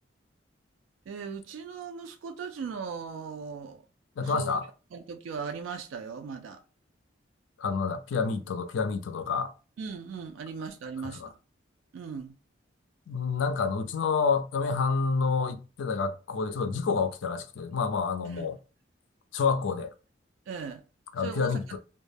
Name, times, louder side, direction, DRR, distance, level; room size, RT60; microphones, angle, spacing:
voice 1, 1.1-3.8 4.2-4.6 4.9-6.6 9.8-11.2 11.9-12.3 18.3-18.5 20.5-20.8 21.2-21.6, right 6 dB, 85° right, 0.3 m, -38 dB
voice 2, 4.2-4.6 7.6-9.5 11.0-11.3 13.1-18.6 19.3-19.9 21.1-21.8, left 5 dB, 80° left, 0.4 m, -28 dB
2.2 x 2.0 x 3.2 m
head